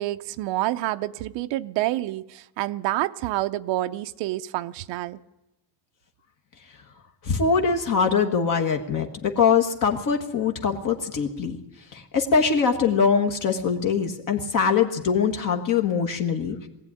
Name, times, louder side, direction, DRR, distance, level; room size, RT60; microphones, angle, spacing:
voice 1, 0.0-5.2, right 16 dB, 60° right, 0.7 m, -28 dB
voice 2, 7.2-11.6 11.9-16.6, left 6 dB, 40° left, 1.6 m, -23 dB
21.0 x 16.0 x 9.8 m
cardioid pair, 175°, 49 cm